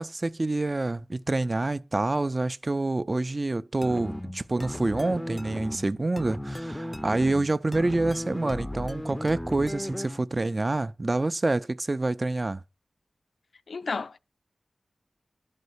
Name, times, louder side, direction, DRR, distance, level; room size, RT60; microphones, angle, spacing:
voice 1, 0.0-12.6, right 2 dB, 30° right, 0.6 m, -27 dB
sound 1, 3.8-10.3, left 1 dB, 10° left, 0.6 m, -36 dB
voice 2, 13.7-14.2, left 4 dB, 70° left, 0.5 m, -32 dB
12.5 x 5.4 x 8.0 m
wide cardioid pair, 110°, 0 cm